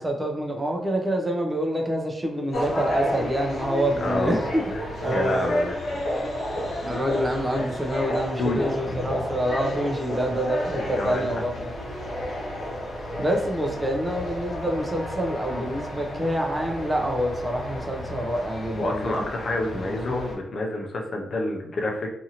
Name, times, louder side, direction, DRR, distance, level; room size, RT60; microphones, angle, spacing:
voice 1, 0.0-4.6 5.0-5.5 6.8-11.7 13.2-19.3 19.6-20.1, right 1 dB, 20° right, 2 dB, 0.6 m, -27 dB
sound 1, 2.5-20.3, left 1 dB, 65° left, 0.9 m, -32 dB
voice 2, 4.0-4.4 4.7-4.8 5.1-5.8 6.5-6.6 8.4-8.7 11.0-11.4 18.7-22.1, left 2 dB, 50° left, 1 dB, 0.5 m, -28 dB
2.7 x 2.5 x 2.8 m, 0.78 s
cardioid pair, 95°, 0 cm